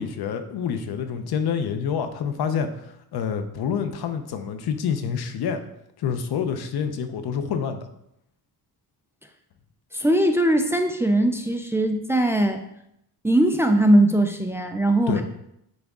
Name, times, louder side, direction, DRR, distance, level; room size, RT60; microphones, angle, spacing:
voice 1, 0.0-5.6 6.0-7.9 15.1-15.2, left 7 dB, 80° left, 8 dB, 0.8 m, -27 dB
voice 2, 9.9-12.6 13.2-15.2, right 1 dB, 5° right, 5 dB, 0.4 m, -20 dB
9.4 x 3.5 x 3.6 m, 0.78 s
cardioid pair, 145°, 37 cm